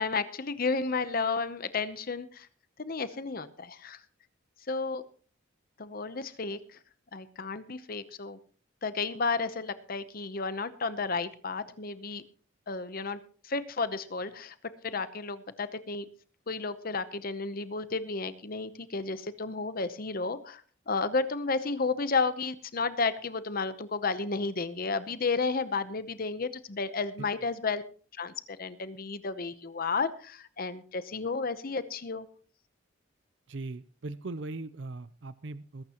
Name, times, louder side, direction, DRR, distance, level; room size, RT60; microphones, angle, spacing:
voice 1, 0.0-2.5 2.8-4.0 4.7-5.0 5.8-6.8 7.1-8.4 8.8-12.2 12.7-14.6 14.8-16.1 16.5-27.8 28.1-32.3, left 4 dB, 45° left, 13 dB, 0.8 m, -32 dB
voice 2, 33.5-35.8, right 2 dB, 60° right, 14 dB, 0.6 m, -39 dB
21.0 x 12.0 x 3.0 m, 0.40 s
head